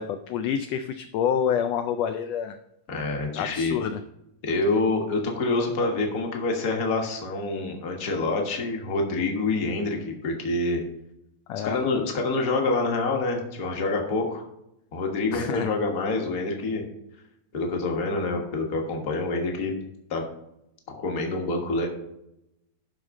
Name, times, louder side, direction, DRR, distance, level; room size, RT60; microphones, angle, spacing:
voice 1, 0.0-2.6 3.3-4.0 11.5-11.8 15.3-15.7, left 8 dB, 80° left, 8 dB, 1.5 m, -27 dB
voice 2, 2.9-3.8 4.4-10.8 11.6-14.4 14.9-16.8 17.5-19.7 20.1-20.2 20.9-21.9, left 3 dB, 40° left, 1 dB, 1.3 m, -26 dB
12.0 x 5.3 x 3.7 m, 0.83 s
omnidirectional pair, 3.4 m